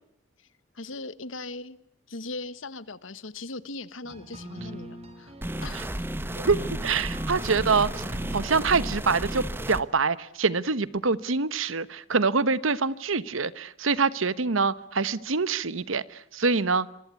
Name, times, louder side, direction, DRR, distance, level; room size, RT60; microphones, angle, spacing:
voice 1, 0.7-1.8 2.1-5.3 5.6-6.1 7.4-7.9, left 3 dB, 85° left, 16 dB, 1.3 m, -39 dB
sound 1, 4.0-9.5, right 1 dB, 30° right, 3.7 m, -42 dB
sound 2, 5.4-9.8, right 1 dB, 10° right, 1.0 m, -33 dB
voice 2, 6.3-8.0 8.3-16.9, right 4 dB, 90° right, 17 dB, 1.1 m, -25 dB
26.0 x 24.0 x 8.2 m, 0.74 s
head